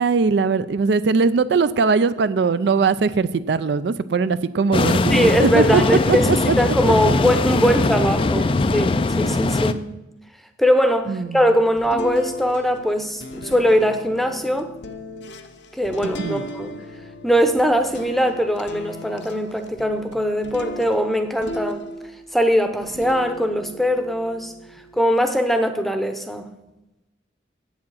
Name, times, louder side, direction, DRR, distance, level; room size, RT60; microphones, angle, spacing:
voice 1, 0.0-5.8 6.1-6.5 8.4-8.5 11.1-11.4 16.0-16.4, right 5 dB, 65° right, 14 dB, 0.4 m, -20 dB
sound 1, 4.7-9.7, left 3 dB, 30° left, 0.3 m, -20 dB
voice 2, 5.1-6.3 6.6-9.8 10.6-14.7 15.7-16.8 17.2-21.9 22.3-24.5 24.9-26.5, equal, ahead, 8 dB, 0.7 m, -21 dB
sound 2, 11.8-22.4 22.8-25.1, left 1 dB, 70° left, 0.8 m, -37 dB
8.5 x 7.2 x 7.5 m, 0.97 s
head